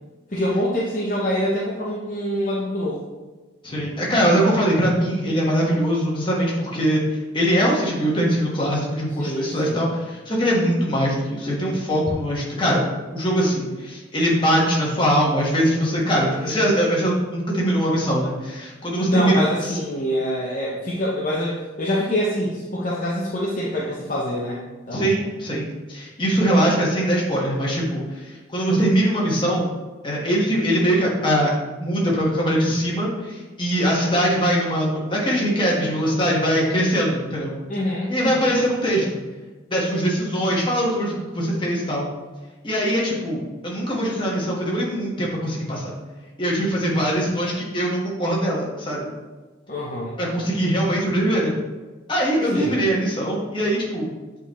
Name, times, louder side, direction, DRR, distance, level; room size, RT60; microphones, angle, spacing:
voice 1, 0.3-3.0 9.2-9.9 16.2-16.7 19.0-24.6 24.9-25.2 37.7-38.5 49.7-50.2 52.5-52.8, equal, 40° left, -5 dB, 0.7 m, -26 dB
voice 2, 3.6-12.9 13.1-19.8 24.9-29.7 30.0-31.5 31.8-37.5 38.1-39.2 39.7-42.1 42.6-45.9 46.4-49.1 50.2-51.5 52.1-54.1, equal, 25° left, -4 dB, 1.4 m, -22 dB
8.0 x 3.9 x 3.1 m, 1.2 s
head